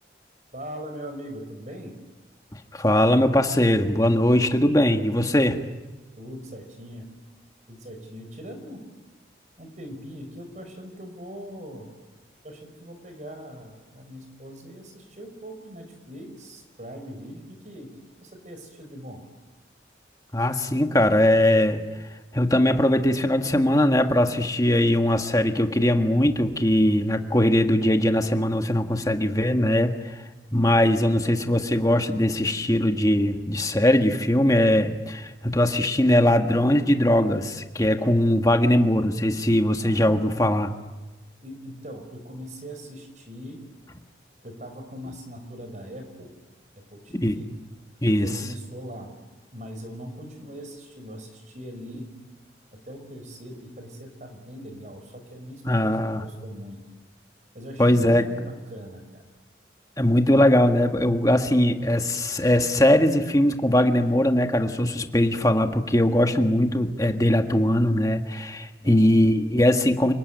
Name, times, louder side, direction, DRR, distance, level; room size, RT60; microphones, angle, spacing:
voice 1, 0.5-2.0 6.2-7.1 7.7-8.9 9.6-11.9 12.4-17.9 18.2-19.2 39.8-40.6 41.4-43.6 44.4-46.3 46.9-47.5 48.1-49.1 49.5-52.2 52.8-56.8 57.5-59.2 66.4-66.6 68.8-69.2, equal, 40° right, 5 dB, 5.1 m, -41 dB
voice 2, 2.7-5.6 20.3-21.8 22.3-30.1 30.5-40.7 47.2-47.4 48.0-48.3 55.6-56.2 57.8-58.2 60.0-70.1, left 1 dB, 20° left, 5 dB, 1.7 m, -20 dB
28.5 x 19.5 x 9.3 m, 1.2 s
head